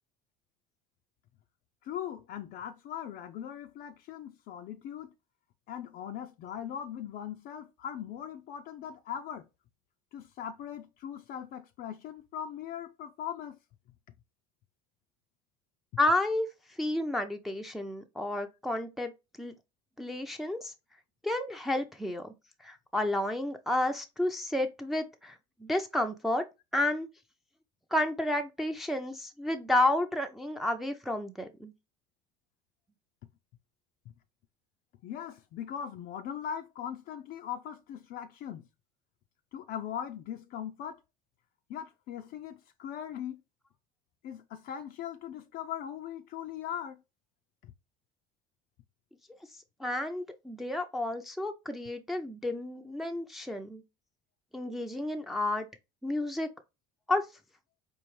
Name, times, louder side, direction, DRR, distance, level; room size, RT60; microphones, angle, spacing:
voice 1, 1.8-5.1 5.7-9.5 10.1-13.6 35.0-38.7 39.5-41.0 41.7-43.4 44.2-47.0, left 9 dB, 55° left, 0.4 m, -40 dB
voice 2, 16.0-16.5 16.8-19.1 19.4-19.5 20.0-20.7 21.2-22.3 22.6-26.4 26.7-27.1 27.9-31.7 49.8-53.8 54.5-55.7 56.0-56.5 57.1-57.3, left 1 dB, ahead, 0.5 m, -31 dB
4.5 x 2.5 x 3.1 m
supercardioid pair, 100°, 18 cm